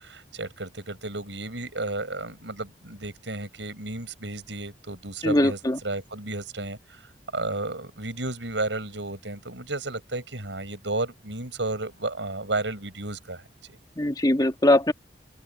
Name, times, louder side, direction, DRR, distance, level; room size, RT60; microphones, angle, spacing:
voice 1, 0.0-7.0 7.3-13.8, right 2 dB, 85° right, 6.6 m, -33 dB
voice 2, 5.2-5.8 14.0-14.9, left 1 dB, 20° left, 1.8 m, -21 dB
open air
head